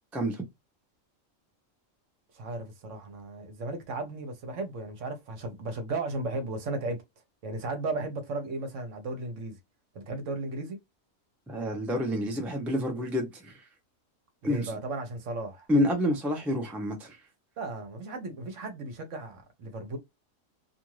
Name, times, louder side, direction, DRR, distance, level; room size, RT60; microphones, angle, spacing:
voice 1, 0.1-0.4 11.5-13.6 14.4-14.7 15.7-17.2, equal, ahead, 0.4 m, -28 dB
voice 2, 2.3-7.0 7.4-9.6 9.9-10.8 14.4-15.7 17.6-20.0, right 2 dB, 70° right, 1.1 m, -35 dB
2.5 x 2.5 x 3.0 m
omnidirectional pair, 1.4 m